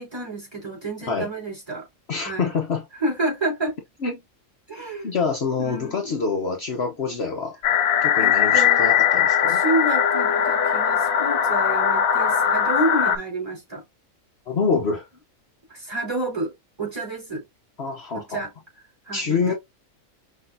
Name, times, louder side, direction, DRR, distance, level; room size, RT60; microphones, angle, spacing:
voice 1, 0.0-1.9 2.2-2.5 3.0-3.8 4.7-5.1 5.6-6.2 8.2-8.9 9.5-13.8 15.7-16.5 16.8-17.4 18.1-18.5 19.1-19.6, right 2 dB, 20° right, 3.3 m, -29 dB
voice 2, 2.1-2.9 4.0-4.2 5.0-7.6 8.0-9.6 14.5-15.1 17.8-18.4 19.1-19.5, left 4 dB, 55° left, 1.1 m, -26 dB
sound 1, 7.6-13.2, left 8 dB, 85° left, 1.2 m, -20 dB
5.9 x 3.0 x 2.6 m
omnidirectional pair, 1.4 m